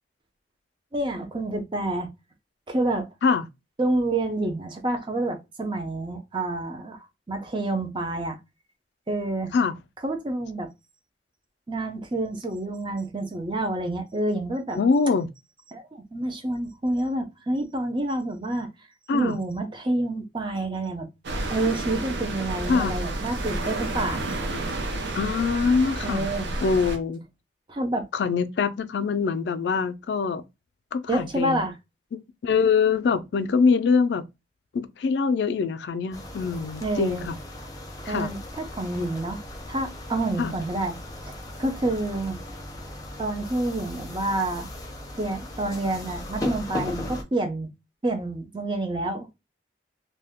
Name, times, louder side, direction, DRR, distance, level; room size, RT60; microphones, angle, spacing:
voice 1, 0.9-2.1 2.7-3.1 3.8-8.4 9.1-9.5 10.0-10.7 11.7-14.8 15.7-18.7 19.1-21.1 21.5-24.2 26.0-26.5 27.7-28.1 31.1-31.7 36.8-37.3 38.1-39.4 39.7-40.9 41.3-42.4 43.2-44.7 45.2-47.7 48.0-49.3, right 2 dB, 25° right, 0.6 m, -28 dB
voice 2, 14.7-15.3 19.1-19.4 22.7-23.0 25.1-26.3 26.6-27.2 28.1-30.4 30.9-31.6 32.1-34.2 34.7-37.3 38.0-38.3 40.4-40.5, left 5 dB, 75° left, 0.3 m, -24 dB
sound 1, 21.2-27.0, right 2 dB, 80° right, 0.6 m, -30 dB
sound 2, 36.1-47.2, left 1 dB, 20° left, 0.6 m, -37 dB
2.7 x 2.2 x 3.5 m
head